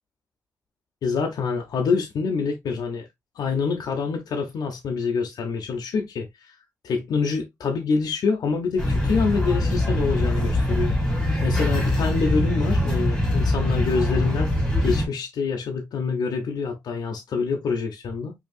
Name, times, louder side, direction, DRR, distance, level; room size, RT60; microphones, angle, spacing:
voice 1, 1.0-3.1 3.4-6.5 6.8-11.0 11.4-14.5 14.8-18.3, left 5 dB, 85° left, 0.7 m, -26 dB
sound 1, 8.8-15.1, left 1 dB, 10° left, 2.3 m, -23 dB
5.2 x 2.9 x 2.3 m
wide cardioid pair, 125°, 7 cm